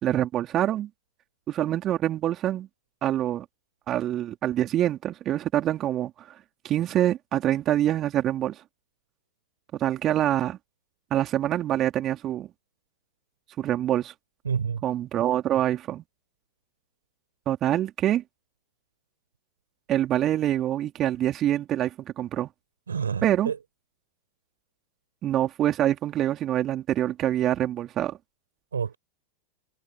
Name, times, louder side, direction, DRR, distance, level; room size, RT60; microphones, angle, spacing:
voice 1, 0.0-0.9 1.5-2.7 3.0-3.4 3.9-6.1 6.6-8.6 9.7-10.6 11.1-12.5 13.6-14.1 14.8-16.0 17.4-18.2 19.9-22.5 23.2-23.5 25.2-28.2, right 12 dB, 35° right, 3.4 m, -25 dB
voice 2, 14.4-14.8 22.9-23.6 28.7-29.0, right 6 dB, 80° right, 4.4 m, -28 dB
figure-of-eight pair, 90°, 0 cm